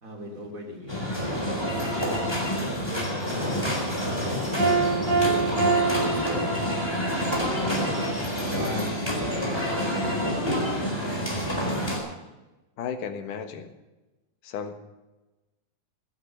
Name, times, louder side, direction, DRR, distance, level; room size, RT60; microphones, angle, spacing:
voice 1, 0.0-1.5 1.8-2.3 2.8-4.5 5.1-5.6 6.2-6.4 7.4-8.8 10.2-11.4, equal, 25° right, 2 dB, 3.2 m, -38 dB
sound 1, 0.9-12.0, equal, 5° left, 4.1 m, -28 dB
Piano, 4.6-7.1, right 4 dB, 45° right, 7.6 m, -25 dB
voice 2, 12.8-13.7 14.4-14.8, left 7 dB, 85° left, 8 dB, 3.0 m, -34 dB
16.0 x 12.0 x 6.7 m, 1.1 s
omnidirectional pair, 3.6 m